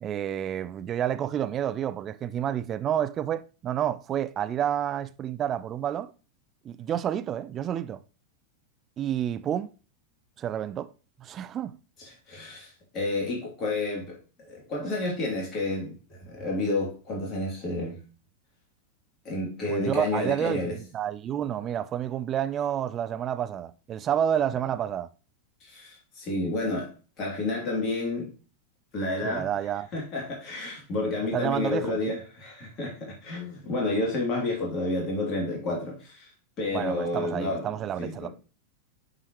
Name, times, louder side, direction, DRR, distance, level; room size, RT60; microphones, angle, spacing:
voice 1, 0.0-6.1 6.6-8.0 9.0-9.7 10.4-10.9 11.2-11.8 19.7-25.1 29.2-29.9 31.3-32.2 36.7-38.3, right 10 dB, 30° right, 0.4 m, -29 dB
voice 2, 12.0-18.0 19.2-20.8 25.6-26.9 27.2-28.3 28.9-29.5 29.9-36.3 36.6-38.3, left 2 dB, 30° left, 3.0 m, -30 dB
8.4 x 4.8 x 3.1 m
figure-of-eight pair, 90°, 0 cm